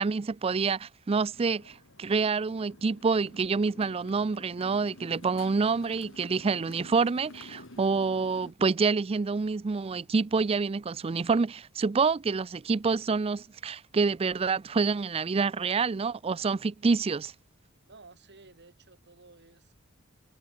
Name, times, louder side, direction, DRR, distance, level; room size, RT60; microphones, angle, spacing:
voice 1, 0.0-17.3, right 4 dB, 25° right, 0.4 m, -27 dB
Motorcycle, 1.3-8.5, left 2 dB, 60° left, 3.7 m, -51 dB
voice 2, 17.9-19.7, right 3 dB, 50° right, 2.6 m, -54 dB
head